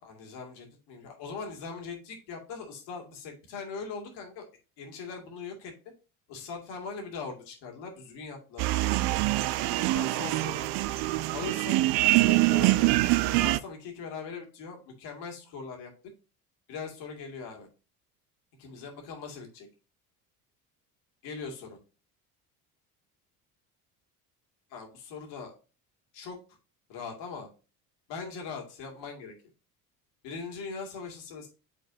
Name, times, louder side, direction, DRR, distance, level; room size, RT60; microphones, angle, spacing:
voice 1, 0.0-4.4 4.8-5.7 6.3-9.0 9.7-10.7 11.3-11.8 12.1-12.9 13.4-15.9 16.7-17.7 18.6-19.7 21.2-21.8 24.7-25.5 26.1-26.4 26.9-27.5 28.1-29.3 30.2-31.5, left 5 dB, 65° left, 2 dB, 2.3 m, -40 dB
sound 1, 8.6-13.6, right 18 dB, 55° right, 0.5 m, -24 dB
8.8 x 4.0 x 2.7 m, 0.34 s
hypercardioid pair, 65°, 46 cm